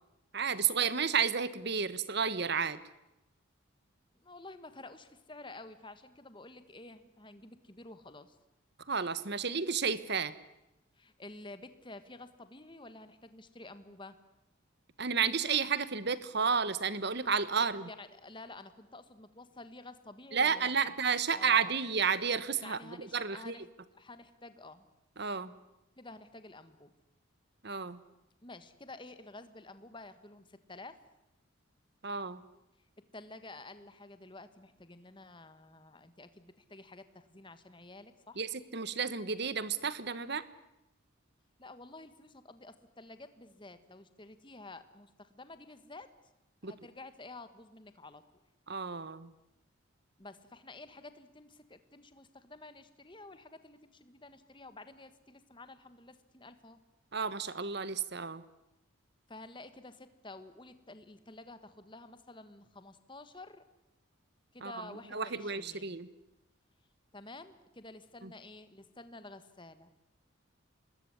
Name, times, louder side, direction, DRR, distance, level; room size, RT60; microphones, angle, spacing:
voice 1, 0.3-2.8 8.9-10.3 15.0-17.9 20.3-23.5 25.2-25.5 27.6-28.0 32.0-32.4 38.4-40.4 46.6-46.7 48.7-49.3 57.1-58.4 64.6-64.8 65.1-66.1 68.2-68.3, right 6 dB, 50° right, 15 dB, 1.3 m, -31 dB
voice 2, 4.1-8.4 11.0-14.2 17.7-20.9 21.3-21.7 22.6-23.7 23.9-24.9 26.0-26.9 28.4-31.0 33.1-38.4 41.6-46.1 46.6-48.2 50.2-56.8 59.3-63.6 64.5-66.0 67.1-69.9, left 2 dB, 20° left, 11 dB, 1.6 m, -50 dB
25.5 x 20.5 x 9.9 m, 0.92 s
head